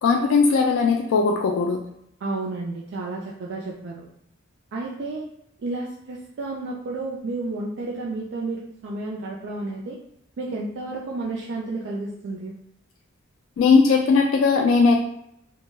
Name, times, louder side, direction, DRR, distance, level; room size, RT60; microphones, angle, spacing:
voice 1, 0.0-1.8 13.6-15.0, left 4 dB, 80° left, 2 dB, 0.3 m, -18 dB
voice 2, 2.2-4.1 4.7-5.3 5.6-10.0 10.4-12.5, right 2 dB, 60° right, -3 dB, 0.3 m, -31 dB
2.1 x 2.1 x 3.2 m, 0.75 s
head